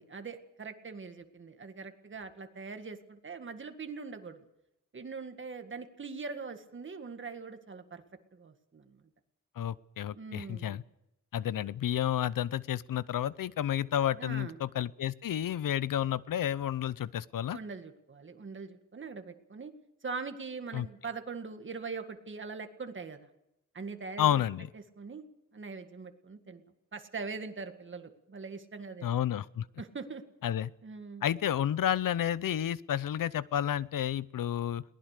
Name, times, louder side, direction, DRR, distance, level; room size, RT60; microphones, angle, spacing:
voice 1, 0.0-4.5 4.9-8.0 8.3-9.0 10.1-10.8 14.1-14.6 17.5-19.7 20.0-23.3 23.7-24.4 24.7-25.3 25.5-26.6 26.9-29.2 29.8-30.2 30.8-31.3, right 4 dB, 35° right, 7 dB, 1.9 m, -42 dB
voice 2, 9.6-10.8 11.3-17.6 20.7-20.9 24.2-24.7 29.0-29.7 30.4-30.7 31.2-34.8, left 10 dB, 85° left, 18 dB, 0.7 m, -31 dB
22.0 x 19.5 x 6.7 m, 0.85 s
wide cardioid pair, 170°, 32 cm